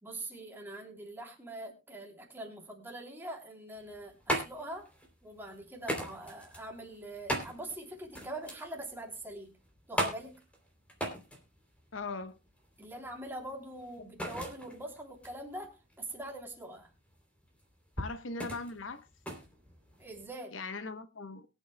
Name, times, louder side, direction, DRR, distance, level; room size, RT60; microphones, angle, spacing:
voice 1, 0.0-4.9 5.2-9.5 9.9-10.4 12.8-16.9 20.0-20.6, right 1 dB, 10° right, 3.1 m, -43 dB
sound 1, 3.8-20.3, equal, 5° left, 3.1 m, -39 dB
voice 2, 11.9-12.3 18.0-19.1 20.5-21.5, left 3 dB, 70° left, 0.9 m, -39 dB
23.0 x 8.6 x 2.2 m
head